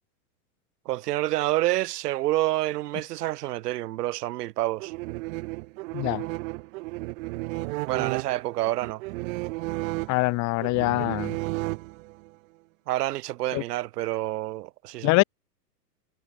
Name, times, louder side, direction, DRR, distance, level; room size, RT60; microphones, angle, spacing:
voice 1, 0.9-4.9 7.9-9.0 12.9-15.2, right 16 dB, 75° right, 0.7 m, -28 dB
sound 1, 4.8-12.3, right 23 dB, 55° right, 1.7 m, -33 dB
voice 2, 5.9-6.3 10.1-11.4 13.5-13.6 15.0-15.2, left 24 dB, 35° left, 0.9 m, -24 dB
hypercardioid pair, 115°, 48 cm